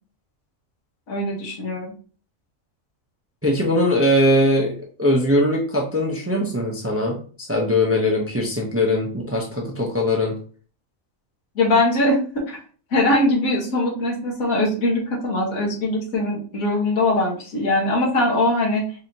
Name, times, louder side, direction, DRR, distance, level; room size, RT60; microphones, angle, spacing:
voice 1, 1.1-1.9 11.5-12.2 12.5-12.6 12.9-18.8, left 2 dB, 90° left, -2 dB, 1.7 m, -21 dB
voice 2, 3.4-10.4, left 1 dB, 15° right, -1 dB, 0.5 m, -21 dB
4.8 x 2.8 x 2.8 m, 0.41 s
omnidirectional pair, 1.4 m